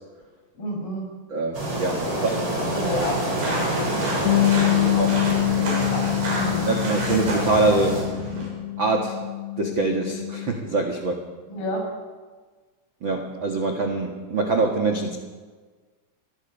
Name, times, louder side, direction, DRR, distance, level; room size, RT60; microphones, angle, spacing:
voice 1, 0.6-1.0 1.9-4.0 4.6-5.2 5.6-6.7 11.5-11.9, left 1 dB, 55° left, -1 dB, 7.7 m, -31 dB
voice 2, 1.3-2.1 5.0-5.1 6.7-8.0 8.8-9.2 9.6-11.2 13.0-15.2, right 3 dB, 60° right, 2 dB, 1.3 m, -24 dB
sound 1, 1.5-8.0, right 1 dB, 30° right, 5.1 m, -28 dB
sound 2, 3.0-8.5, right 1 dB, 80° right, 9.2 m, -32 dB
Bass guitar, 4.3-10.5, left 17 dB, 75° left, 2.5 m, -25 dB
27.0 x 19.0 x 5.5 m, 1.4 s
omnidirectional pair, 5.0 m